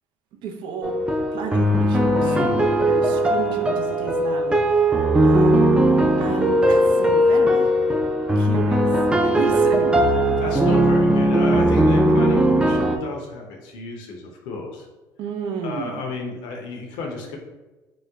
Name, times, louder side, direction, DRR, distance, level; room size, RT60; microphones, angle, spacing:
voice 1, 0.4-1.0 1.3-2.3 2.8-7.7 8.4-10.0 10.4-10.7 15.2-16.0, right 5 dB, 70° right, 5 dB, 0.5 m, -33 dB
sound 1, 0.8-13.0, right 1 dB, 10° right, 0.4 m, -18 dB
voice 2, 2.2-2.8 10.1-14.9 15.6-17.4, left 3 dB, 80° left, 2 dB, 0.6 m, -32 dB
3.0 x 2.1 x 3.4 m, 1.1 s
supercardioid pair, 85°, 9 cm